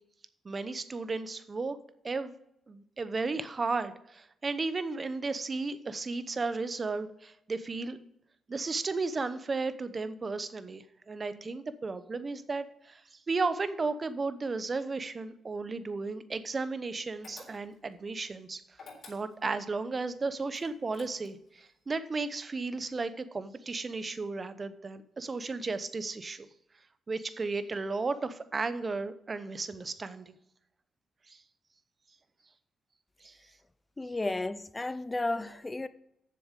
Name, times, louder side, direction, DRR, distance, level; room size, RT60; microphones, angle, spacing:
voice 1, 0.4-1.8 2.0-2.3 2.7-8.0 8.5-18.6 19.1-26.5 27.1-30.4 31.3-31.4 33.2-33.4, right 3 dB, 40° right, 0.8 m, -34 dB
sound 1, 17.2-17.9 18.7-19.6 20.5-21.5, left 4 dB, 60° left, 3.9 m, -51 dB
voice 2, 34.0-35.9, left 2 dB, 25° left, 0.5 m, -33 dB
7.3 x 6.8 x 6.5 m
supercardioid pair, 55°, 0 cm